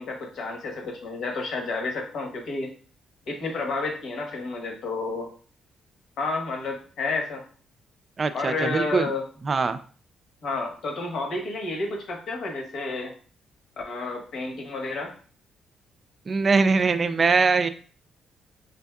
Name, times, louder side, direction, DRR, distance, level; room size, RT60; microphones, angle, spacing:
voice 1, 0.0-2.7 3.3-5.3 6.2-7.4 8.3-9.2 10.4-13.1 13.8-15.1, left 3 dB, 70° left, 1 dB, 1.1 m, -30 dB
voice 2, 8.2-9.1 9.5-9.8 16.3-17.7, right 4 dB, 40° right, 11 dB, 0.3 m, -22 dB
5.1 x 2.6 x 2.3 m, 0.41 s
cardioid pair, 90°, 0 cm